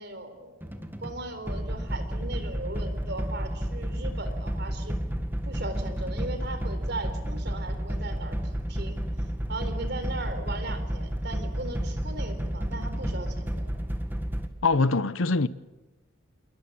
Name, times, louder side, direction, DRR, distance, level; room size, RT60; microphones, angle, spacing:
voice 1, 0.0-5.0 5.4-9.0 9.5-13.7, right 2 dB, 55° right, 4.2 m, -38 dB
sound 1, 0.6-14.5, equal, 10° right, 1.8 m, -31 dB
voice 2, 14.6-15.5, left 3 dB, 75° left, 0.9 m, -23 dB
28.5 x 21.5 x 8.7 m
head